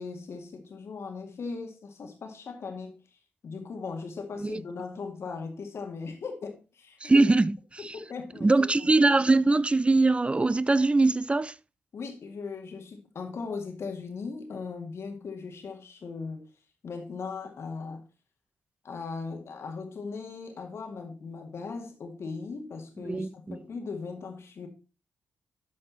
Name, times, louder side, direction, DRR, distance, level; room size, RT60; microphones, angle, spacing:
voice 1, 0.0-3.0 3.4-7.2 7.9-8.9 11.9-16.4 16.8-18.0 18.8-24.7, left 4 dB, 60° left, 2.1 m, -38 dB
voice 2, 7.0-7.9 8.4-11.5 23.0-23.6, right 3 dB, 25° right, 0.4 m, -22 dB
12.5 x 4.3 x 4.1 m
hypercardioid pair, 40°, 5 cm